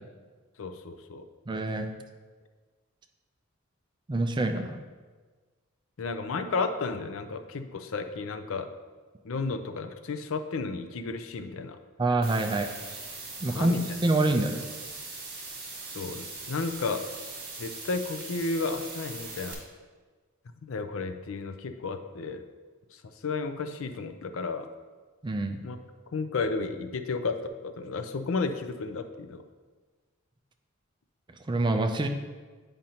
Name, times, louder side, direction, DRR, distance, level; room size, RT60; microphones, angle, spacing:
voice 1, 0.6-1.3 6.0-8.7 9.2-11.8 13.5-13.8 15.9-17.1 17.6-19.6 20.6-22.4 22.9-24.7 25.6-25.8 26.1-29.4, left 4 dB, 65° left, 8 dB, 0.5 m, -33 dB
voice 2, 1.5-1.9 4.1-4.8 12.0-12.7 13.4-14.6 25.2-25.6 31.5-32.1, right 2 dB, 20° right, 6 dB, 0.4 m, -26 dB
sound 1, 12.2-19.5, right 3 dB, 45° right, 1.7 m, -41 dB
9.0 x 5.1 x 2.8 m, 1.4 s
head